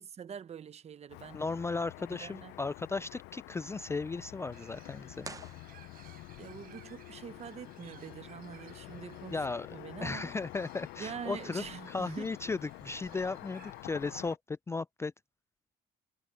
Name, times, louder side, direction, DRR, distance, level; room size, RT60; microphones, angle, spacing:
voice 1, 0.0-1.4 2.1-2.6 6.4-9.4 9.7-10.3 11.0-12.3 13.1-13.3, right 8 dB, 40° right, 0.9 m, -45 dB
Car passing by / Traffic noise roadway noise, 1.1-14.4, left 20 dB, 85° left, 0.4 m, -48 dB
voice 2, 1.3-5.3 9.3-9.7 10.0-15.1, left 3 dB, 15° left, 0.3 m, -36 dB
Bird, 4.5-14.1, right 11 dB, 60° right, 5.1 m, -60 dB
sound 1, 5.2-6.4, right 4 dB, 20° right, 0.6 m, -48 dB
cardioid pair, 110°, 17 cm